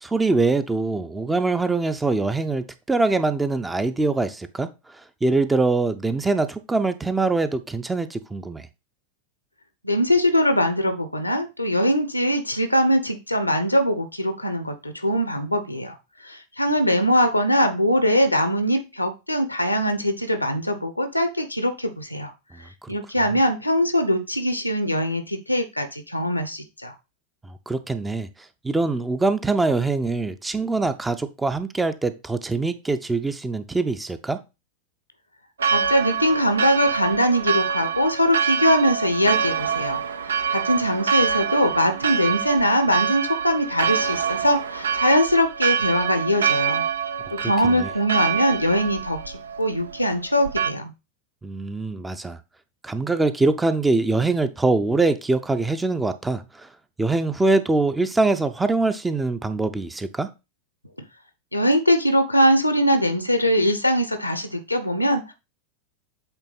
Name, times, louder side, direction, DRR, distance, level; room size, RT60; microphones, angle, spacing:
voice 1, 0.0-4.7 5.2-8.7 22.8-22.9 27.7-28.3 28.6-34.4 47.4-47.9 51.4-52.4 52.8-56.7 57.0-60.3, right 3 dB, 10° right, 0.6 m, -23 dB
voice 2, 9.8-15.9 16.2-22.3 22.9-26.9 35.7-40.0 40.5-46.8 47.3-49.2 49.6-50.9 61.5-65.3, equal, 85° left, 0.9 m, -22 dB
Church bell, 35.6-50.7, right 7 dB, 70° right, 0.5 m, -26 dB
8.0 x 3.5 x 4.1 m
figure-of-eight pair, 90°, 0 cm